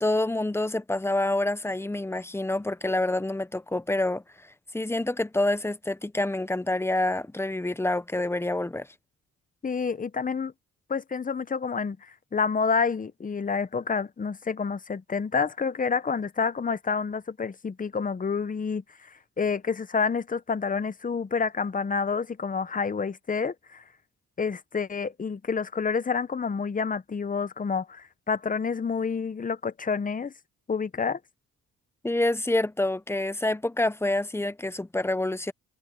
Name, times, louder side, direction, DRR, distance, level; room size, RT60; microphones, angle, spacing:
voice 1, 0.0-4.2 4.7-8.9 32.0-35.5, left 2 dB, 10° left, 0.8 m, -27 dB
voice 2, 9.6-10.5 10.9-23.8 24.4-30.3 30.7-31.2, left 5 dB, 25° left, 1.1 m, -28 dB
cardioid pair, 90°, 30 cm